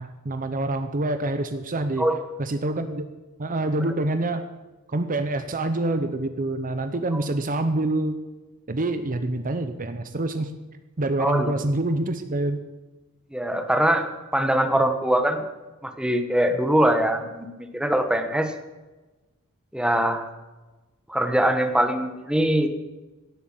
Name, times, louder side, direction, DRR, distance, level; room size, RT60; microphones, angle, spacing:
voice 1, 0.0-2.0 2.4-3.1 3.4-4.4 4.9-8.2 8.7-10.5 11.0-12.6, right 2 dB, 40° right, 9 dB, 0.8 m, -26 dB
voice 2, 11.2-11.5 13.3-14.1 14.3-15.4 15.8-18.5 19.7-20.3 21.1-22.7, right 1 dB, 5° right, 6 dB, 1.2 m, -22 dB
17.0 x 7.8 x 7.6 m, 1.2 s
head